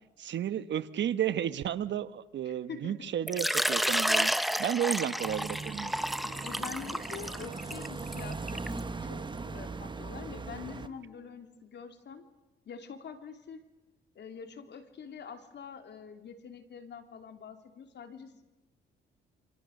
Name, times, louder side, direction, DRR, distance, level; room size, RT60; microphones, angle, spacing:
voice 1, 0.2-4.3 4.6-5.9, right 10 dB, 65° right, 14 dB, 1.2 m, -32 dB
voice 2, 2.5-3.1 6.4-9.2 9.5-12.2 12.7-13.6 14.2-18.4, left 6 dB, 60° left, 7 dB, 3.3 m, -45 dB
Water / Liquid, 3.3-8.8, equal, ahead, 0.9 m, -31 dB
sound 1, 5.2-10.9, right 3 dB, 25° right, 1.4 m, -40 dB
Wind instrument woodwind instrument, 5.9-11.1, right 6 dB, 80° right, 4.0 m, -53 dB
27.5 x 26.0 x 6.6 m, 1.0 s
cardioid pair, 75°, 20 cm